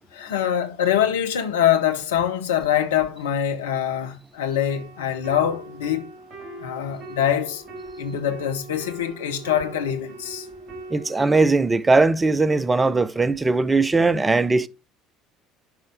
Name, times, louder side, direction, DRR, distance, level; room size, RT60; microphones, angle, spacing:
voice 1, 0.1-6.1 6.6-7.6 8.0-10.5, left 10 dB, 70° left, 0.9 m, -24 dB
sound 1, 4.7-11.5, right 2 dB, 45° right, 2.3 m, -40 dB
voice 2, 10.9-14.7, right 3 dB, 20° right, 0.5 m, -19 dB
10.5 x 5.4 x 3.5 m
figure-of-eight pair, 60°, 0 cm